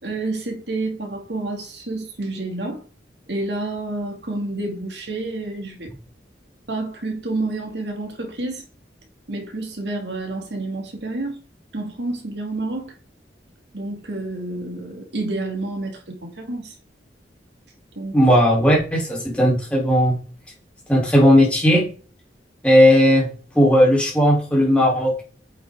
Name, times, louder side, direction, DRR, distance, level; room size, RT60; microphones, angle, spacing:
voice 1, 0.0-2.8 3.3-5.9 6.7-8.6 9.3-11.4 11.7-12.9 13.7-16.8 18.0-18.2, right 2 dB, 75° right, 2.3 m, -29 dB
voice 2, 18.1-20.2 20.9-21.9 22.6-23.3 23.6-25.1, equal, 5° left, 3.8 m, -16 dB
8.8 x 6.1 x 3.7 m
head